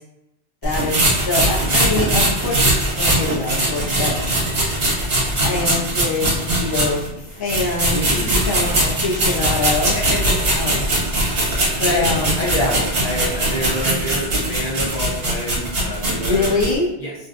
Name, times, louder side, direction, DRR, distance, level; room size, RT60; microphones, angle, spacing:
voice 1, 0.6-2.7 3.0-4.1 5.4-10.0 10.5-10.9 11.8-12.3 16.2-16.9, left 3 dB, 25° left, -7 dB, 0.6 m, -24 dB
sound 1, 0.6-7.1 7.5-16.7, right 1 dB, 70° right, 1.1 m, -20 dB
voice 2, 7.9-8.4 9.9-10.9 11.9-12.1 12.4-16.7 17.0-17.1, equal, 55° left, -5 dB, 0.9 m, -27 dB
2.6 x 2.2 x 2.4 m, 0.84 s
omnidirectional pair, 1.1 m